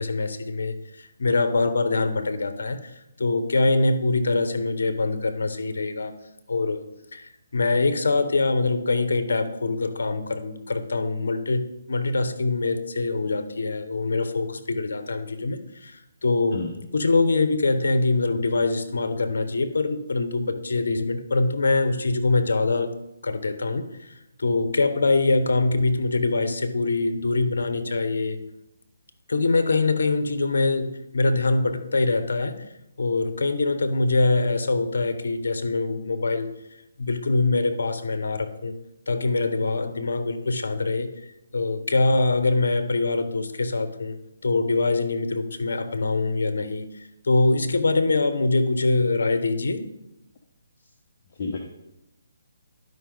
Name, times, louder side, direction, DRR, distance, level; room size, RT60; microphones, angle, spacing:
voice 1, 0.0-6.1 6.5-6.8 7.1-16.6 16.9-22.9 23.2-28.4 29.3-32.6 33.0-36.5 37.0-38.7 39.1-41.1 41.5-44.2 44.4-46.9 47.2-49.8, left 3 dB, 70° left, 9 dB, 1.0 m, -24 dB
voice 2, 16.5-16.8 51.3-51.6, left 3 dB, 40° left, -1 dB, 1.0 m, -31 dB
11.5 x 5.3 x 3.9 m, 0.90 s
hypercardioid pair, 150°, 0 cm